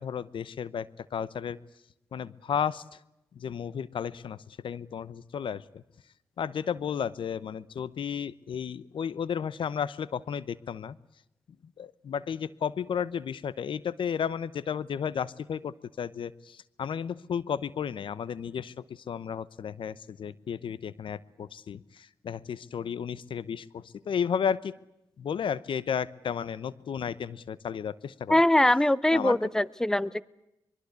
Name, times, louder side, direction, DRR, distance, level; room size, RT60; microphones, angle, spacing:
voice 1, 0.0-1.6 2.1-3.0 3.3-5.8 6.4-11.0 11.8-24.8 25.2-28.4 29.1-29.4, left 7 dB, 70° left, 19 dB, 0.9 m, -33 dB
voice 2, 28.3-30.2, left 1 dB, 5° left, 21 dB, 0.8 m, -22 dB
23.5 x 23.0 x 8.2 m, 0.87 s
cardioid pair, 55°, 9 cm